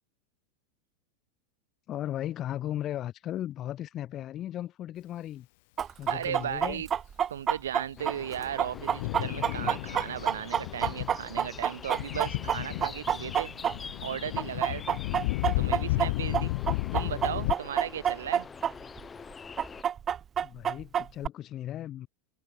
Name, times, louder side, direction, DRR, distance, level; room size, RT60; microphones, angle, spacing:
voice 1, 1.9-5.5 6.0-6.8 20.4-22.1, left 12 dB, 40° left, 1.4 m, -36 dB
Chicken rooster, 5.8-14.1 14.4-18.7 19.0-19.1 19.6-21.3, right 8 dB, 30° right, 0.6 m, -28 dB
voice 2, 6.1-6.9 7.3-13.5 14.0-15.0 15.6-16.5 16.9-18.5, right 10 dB, 85° right, 1.7 m, -36 dB
Thunder, 7.8-17.5, left 23 dB, 65° left, 0.7 m, -33 dB
sound 1, 8.0-19.8, left 5 dB, 20° left, 2.5 m, -45 dB
hypercardioid pair, 105°, 0 cm